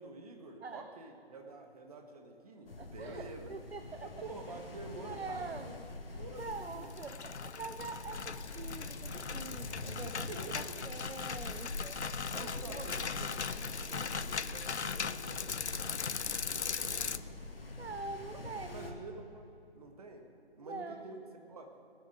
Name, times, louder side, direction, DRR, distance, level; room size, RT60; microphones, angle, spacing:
voice 1, 0.0-3.5 4.0-5.8 6.1-6.9 10.0-10.8 12.3-13.6 13.9-17.3 18.3-18.4 18.7-20.3 20.6-21.2 21.5-21.7, right 3 dB, 35° right, 4 dB, 1.3 m, -49 dB
sound 1, 2.7-18.9, left 2 dB, 60° left, 1.7 m, -45 dB
voice 2, 2.8-4.1 5.0-5.7 6.4-10.3 10.5-12.0 12.3-12.9 16.8-17.1 17.8-19.0 20.6-21.0, right 4 dB, 65° right, 8 dB, 0.8 m, -45 dB
sound 2, 6.7-17.2, left 6 dB, 80° left, 0.6 m, -39 dB
19.0 x 7.9 x 6.2 m, 2.7 s
figure-of-eight pair, 150°, 33 cm